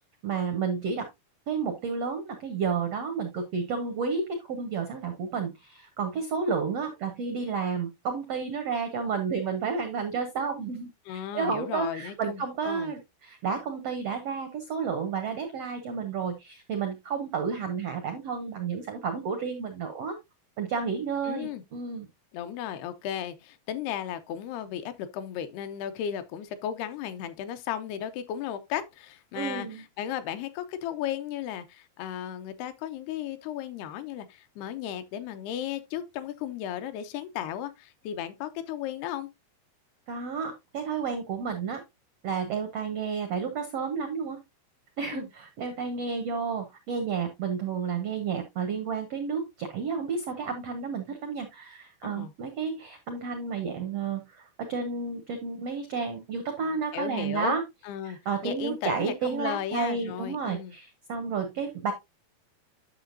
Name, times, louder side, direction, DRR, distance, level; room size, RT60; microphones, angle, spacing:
voice 1, 0.2-1.1 1.5-20.2 20.6-22.1 29.3-29.8 40.1-41.8 42.2-44.4 45.0-57.6 58.0-61.9, right 5 dB, 90° right, 1.4 m, -31 dB
voice 2, 11.1-12.9 21.2-21.6 22.3-39.3 45.1-45.3 52.0-52.3 56.9-57.6 57.8-60.8, left 10 dB, 85° left, 2.8 m, -35 dB
9.9 x 6.6 x 2.6 m
omnidirectional pair, 4.5 m